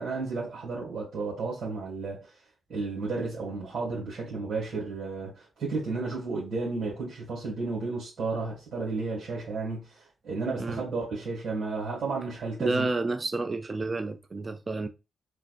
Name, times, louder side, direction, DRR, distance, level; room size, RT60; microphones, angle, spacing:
voice 1, 0.0-2.3 2.7-12.9, right 3 dB, 70° right, 1.6 m, -33 dB
voice 2, 12.6-14.9, right 3 dB, 40° right, 0.3 m, -30 dB
3.4 x 2.3 x 2.4 m
supercardioid pair, 50°, 0 cm